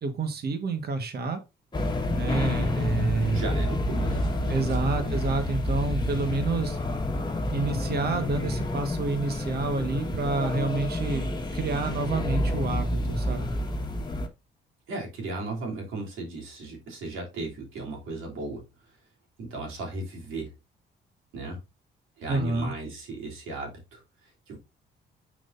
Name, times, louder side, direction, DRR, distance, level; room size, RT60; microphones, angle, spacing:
voice 1, 0.0-1.4 2.1-3.4 4.5-6.8 7.5-13.5 22.3-22.7, right 3 dB, 55° right, 7 dB, 1.6 m, -29 dB
sound 1, 1.7-14.3, left 1 dB, 20° left, 1.5 m, -29 dB
voice 2, 2.5-2.9 3.3-5.3 14.9-18.6 19.4-20.5 21.3-21.6 22.2-24.6, right 2 dB, 85° right, -1 dB, 3.2 m, -36 dB
7.5 x 6.2 x 2.6 m, 0.25 s
cardioid pair, 90°, 20 cm